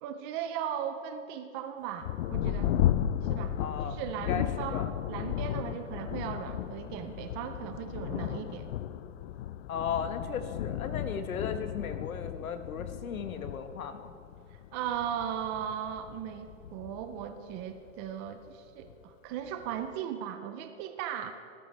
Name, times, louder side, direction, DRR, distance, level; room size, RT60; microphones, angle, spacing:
voice 1, 0.0-2.8 3.2-3.6 3.8-8.7 14.5-21.3, right 9 dB, 20° right, 8 dB, 0.4 m, -37 dB
Thunder, 2.0-18.1 18.8-18.9 19.5-19.9, left 11 dB, 50° left, 0.6 m, -34 dB
voice 2, 3.6-4.9 9.7-14.1, left 6 dB, 85° left, 8 dB, 1.4 m, -36 dB
28.0 x 13.0 x 3.3 m, 2.5 s
hypercardioid pair, 135°, 41 cm